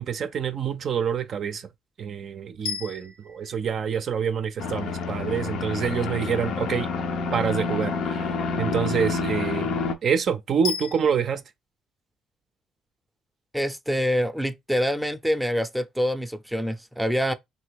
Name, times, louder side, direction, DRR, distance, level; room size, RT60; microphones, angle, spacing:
voice 1, 0.0-1.7 2.0-6.9 7.3-9.8 10.0-11.4, right 7 dB, 55° right, 0.4 m, -27 dB
sound 1, 2.6-4.8 10.6-11.4, left 6 dB, 85° left, 1.3 m, -36 dB
sound 2, 4.6-9.9, left 4 dB, 65° left, 0.5 m, -28 dB
voice 2, 13.5-17.3, equal, ahead, 0.5 m, -26 dB
2.8 x 2.6 x 3.4 m
hypercardioid pair, 55°, 0 cm